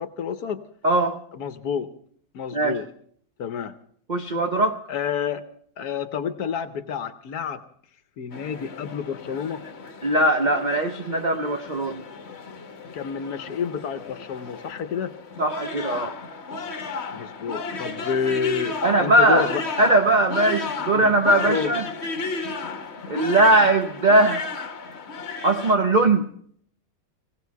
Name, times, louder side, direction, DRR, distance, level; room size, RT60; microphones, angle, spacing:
voice 1, 0.0-0.7 1.3-1.9 2.3-2.9 3.4-3.7 4.9-5.4 5.8-7.6 8.2-9.6 12.9-15.2 17.1-19.6 20.9-21.1 21.4-21.8, left 7 dB, 60° left, 11 dB, 1.2 m, -29 dB
voice 2, 0.8-1.2 2.5-2.8 4.1-4.8 10.0-12.0 15.4-16.1 18.8-19.5 19.8-21.8 23.1-24.5 25.4-26.3, right 2 dB, 55° right, 5 dB, 0.5 m, -20 dB
sound 1, 8.3-25.7, left 4 dB, 45° left, 1.2 m, -34 dB
18.5 x 17.0 x 4.6 m, 0.62 s
omnidirectional pair, 2.0 m